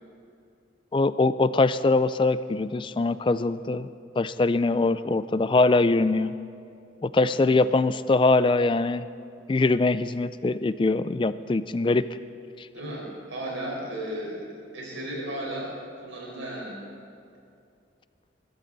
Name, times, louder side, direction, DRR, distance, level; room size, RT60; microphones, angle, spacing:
voice 1, 0.9-3.9 4.2-6.3 7.0-9.1 9.5-12.0 12.6-12.7, left 3 dB, 25° left, 15 dB, 0.3 m, -22 dB
voice 2, 12.7-14.5 14.7-16.8, right 1 dB, 85° right, -2 dB, 4.7 m, -35 dB
22.0 x 13.0 x 4.0 m, 2.5 s
head